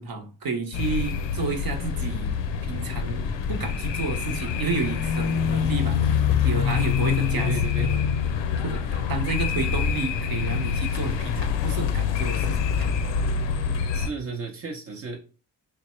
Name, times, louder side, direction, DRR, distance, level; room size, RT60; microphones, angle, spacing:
voice 1, 0.0-2.3 2.7-6.0 6.4-8.1 8.6-12.9, right 3 dB, 55° right, 6 dB, 0.9 m, -31 dB
sound 1, 0.7-14.1, left 7 dB, 90° left, 0.6 m, -25 dB
voice 2, 7.3-7.9 13.9-15.2, right 4 dB, 35° right, 1 dB, 0.6 m, -33 dB
3.4 x 2.2 x 4.2 m, 0.36 s
cardioid pair, 55°, 42 cm